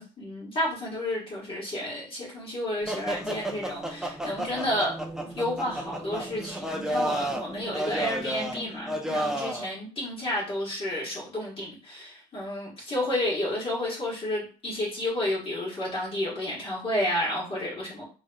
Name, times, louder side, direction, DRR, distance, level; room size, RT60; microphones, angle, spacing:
voice 1, 0.0-4.9 5.3-18.0, left 1 dB, 35° left, -5 dB, 1.4 m, -31 dB
sound 1, 2.9-9.7, right 1 dB, 5° right, 0.6 m, -32 dB
4.0 x 3.2 x 2.3 m, 0.37 s
cardioid pair, 110°, 17 cm